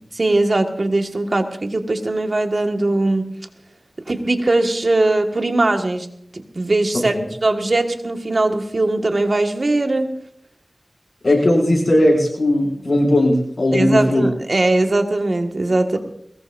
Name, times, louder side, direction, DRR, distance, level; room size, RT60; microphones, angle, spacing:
voice 1, 0.1-3.3 4.1-6.1 6.3-7.2 7.4-10.1 13.7-16.0, right 2 dB, 60° right, 4 dB, 1.7 m, -20 dB
voice 2, 11.2-14.3, left 1 dB, 70° left, 0 dB, 6.5 m, -17 dB
22.0 x 19.5 x 2.6 m, 0.68 s
wide cardioid pair, 45°, 0 cm